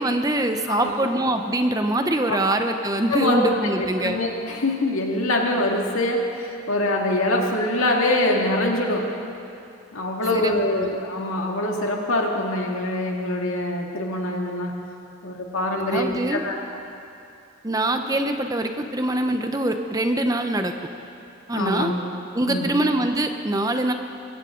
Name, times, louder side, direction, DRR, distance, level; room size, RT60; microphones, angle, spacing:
voice 1, 0.0-4.2 10.3-10.9 15.9-16.4 17.6-20.7 21.5-21.9 22.3-23.9, right 1 dB, 15° right, 6 dB, 0.7 m, -24 dB
voice 2, 3.1-3.4 3.8-9.1 9.9-14.8 15.2-16.6 21.5-22.0 22.5-22.7, left 1 dB, 80° left, 0 dB, 2.1 m, -24 dB
23.5 x 16.5 x 3.8 m, 2.7 s
head